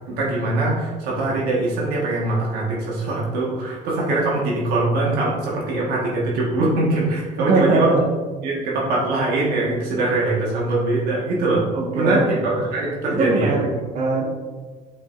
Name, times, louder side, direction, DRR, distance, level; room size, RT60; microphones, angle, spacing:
voice 1, 0.1-7.9 8.4-11.6 11.9-13.5, right 2 dB, 75° right, -4 dB, 1.6 m, -22 dB
voice 2, 7.4-8.0 11.7-12.4 13.1-14.2, right 2 dB, 50° right, 0 dB, 1.5 m, -21 dB
7.4 x 5.0 x 2.6 m, 1.4 s
cardioid pair, 115°, 16 cm